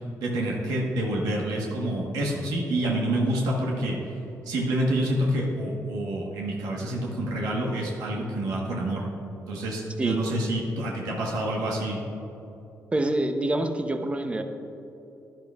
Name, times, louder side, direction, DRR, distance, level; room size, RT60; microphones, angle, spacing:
voice 1, 0.2-4.0 4.4-9.0 9.5-12.0, right 1 dB, 90° right, -2 dB, 1.2 m, -27 dB
voice 2, 12.9-14.4, right 1 dB, 20° right, 7 dB, 0.7 m, -26 dB
10.5 x 10.5 x 2.4 m, 3.0 s
cardioid pair, 90°, 6 cm